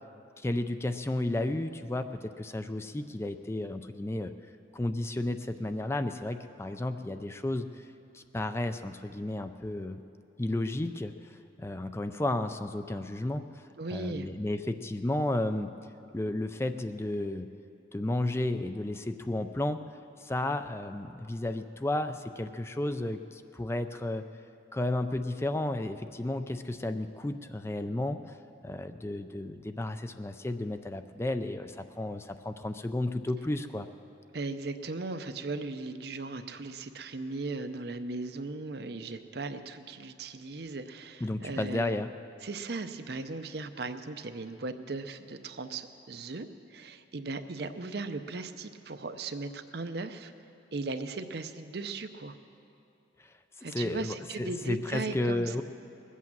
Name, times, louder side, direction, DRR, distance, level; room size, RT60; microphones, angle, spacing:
voice 1, 0.4-4.3 4.7-7.9 8.1-10.0 10.4-15.7 16.1-17.5 17.9-19.8 20.2-24.2 24.7-33.9 41.2-42.1 53.2-55.6, left 1 dB, 15° left, 9 dB, 0.4 m, -33 dB
voice 2, 13.8-14.3 34.3-41.9 42.4-50.3 50.7-52.4 53.6-55.6, right 3 dB, 60° right, 9 dB, 0.7 m, -37 dB
20.5 x 8.3 x 7.4 m, 2.6 s
head